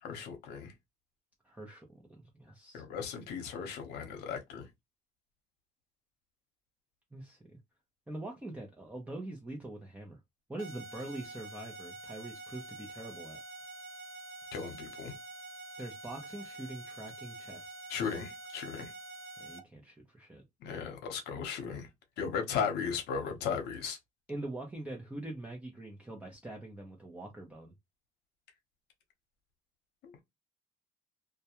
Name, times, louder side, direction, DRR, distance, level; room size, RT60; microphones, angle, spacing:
voice 1, 0.0-0.7 2.7-4.7 14.5-15.2 17.9-18.9 20.6-21.9 22.2-24.0 30.0-30.2, left 6 dB, 80° left, 0.9 m, -36 dB
voice 2, 1.4-2.8 7.1-7.6 8.1-10.2 10.5-13.4 15.8-17.7 19.4-20.4 24.3-27.7, right 2 dB, 10° right, 0.6 m, -44 dB
sound 1, 10.6-19.6, right 2 dB, 75° right, 0.7 m, -47 dB
2.3 x 2.2 x 2.8 m
cardioid pair, 110°, 17 cm